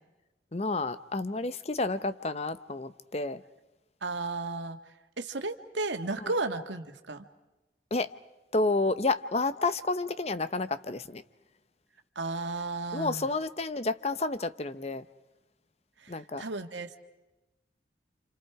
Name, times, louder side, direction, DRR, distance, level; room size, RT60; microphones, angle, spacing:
voice 1, 0.5-3.4 6.2-6.3 7.9-8.1 8.5-11.2 12.9-15.0 16.1-16.4, left 3 dB, 35° left, 0.8 m, -30 dB
voice 2, 4.0-4.8 5.2-7.3 12.2-13.2 16.0-17.0, right 3 dB, 90° right, 1.8 m, -34 dB
30.0 x 28.0 x 4.8 m
head